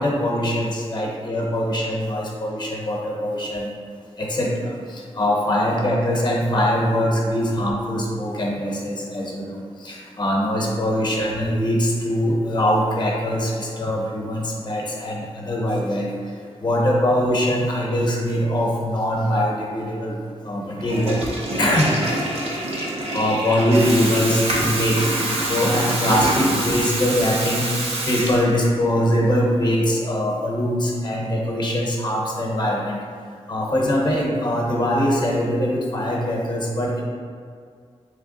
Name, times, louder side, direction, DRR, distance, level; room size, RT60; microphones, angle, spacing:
voice 1, 0.0-3.7 4.2-16.1 16.6-20.2 20.4-22.0 23.1-25.0 25.5-27.6 28.1-33.0 33.5-37.0, equal, 45° left, -2 dB, 0.7 m, -22 dB
Water tap faucet / Toilet flush, 20.8-28.8, right 1 dB, 75° right, 0.7 m, -25 dB
3.3 x 3.1 x 3.8 m, 2.1 s
wide cardioid pair, 155°, 11 cm